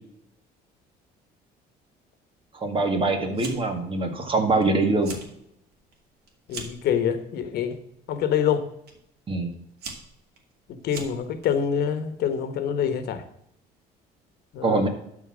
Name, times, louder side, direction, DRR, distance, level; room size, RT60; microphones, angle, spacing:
voice 1, 2.5-5.1 9.3-9.5 14.6-14.9, right 3 dB, 30° right, 6 dB, 2.0 m, -23 dB
Fire, 3.3-3.8 4.1-4.6 4.9-5.3 5.7-6.9 7.7-8.0 8.9-9.0 9.5-11.5, right 4 dB, 70° right, 2.6 m, -40 dB
voice 2, 6.5-7.8 8.1-8.7 10.7-13.2 14.5-14.9, left 8 dB, 70° left, 10 dB, 1.3 m, -26 dB
12.0 x 4.6 x 6.2 m, 0.75 s
cardioid pair, 110°, 17 cm